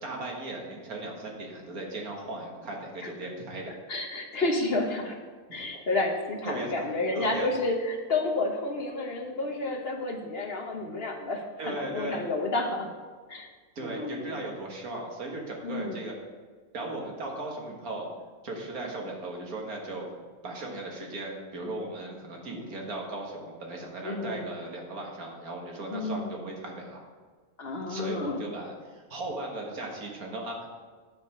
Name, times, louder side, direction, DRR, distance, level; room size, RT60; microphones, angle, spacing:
voice 1, 0.0-3.7 5.5-5.8 6.4-6.9 7.1-7.5 11.6-12.2 13.8-16.1 16.7-18.1 18.4-20.1 20.4-27.0 27.9-30.7, right 2 dB, 85° right, 0 dB, 2.0 m, -37 dB
voice 2, 3.9-5.2 5.5-12.9 13.3-13.5 13.8-14.3 15.6-16.0 24.0-24.5 25.9-26.4 27.6-28.4, left 2 dB, 50° left, 2 dB, 1.1 m, -30 dB
9.0 x 5.1 x 6.3 m, 1.5 s
omnidirectional pair, 1.5 m